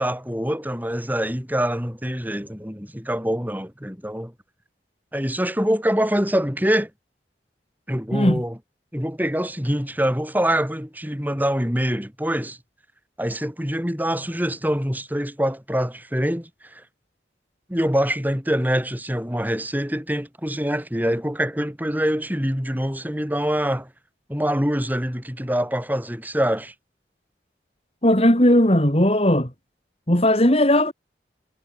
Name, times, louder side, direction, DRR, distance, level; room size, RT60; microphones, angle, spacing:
voice 1, 0.0-4.3 5.1-6.9 7.9-8.6 8.9-12.6 13.2-16.8 17.7-23.9 24.3-26.7, equal, 10° right, 7.8 m, -24 dB
voice 2, 8.1-8.4 28.0-29.5 30.1-30.9, left 1 dB, 35° left, 3.7 m, -17 dB
head